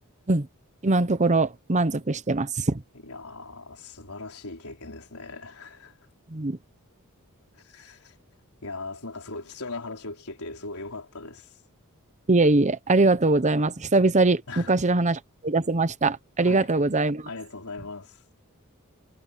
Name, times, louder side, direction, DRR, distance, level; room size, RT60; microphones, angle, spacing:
voice 1, 0.8-2.8 6.3-6.6 12.3-17.3, right 2 dB, 35° right, 0.9 m, -22 dB
voice 2, 3.0-6.0 7.6-8.2 8.6-11.5 14.5-14.7 16.5-16.7 17.3-18.2, left 3 dB, 75° left, 5.0 m, -39 dB
head